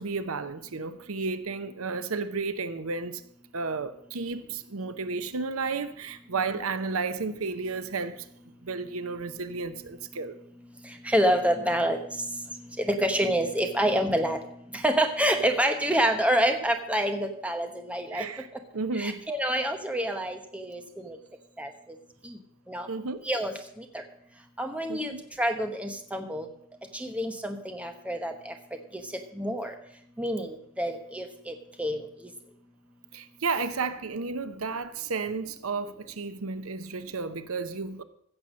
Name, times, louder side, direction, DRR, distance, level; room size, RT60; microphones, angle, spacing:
voice 1, 0.0-3.2 3.5-8.3 8.6-10.4 18.1-18.5 18.7-19.2 22.9-23.3 24.9-25.2 33.1-38.0, right 4 dB, 85° right, 0.8 m, -32 dB
voice 2, 11.0-12.0 12.8-14.4 14.7-18.3 19.0-21.2 21.6-21.7 22.2-22.4 22.7-22.9 23.2-24.0 24.6-25.1 25.4-26.5 26.9-28.5 28.9-29.0 29.3-29.7 30.2-32.0, equal, 5° right, 1.0 m, -27 dB
15.5 x 7.1 x 6.3 m
head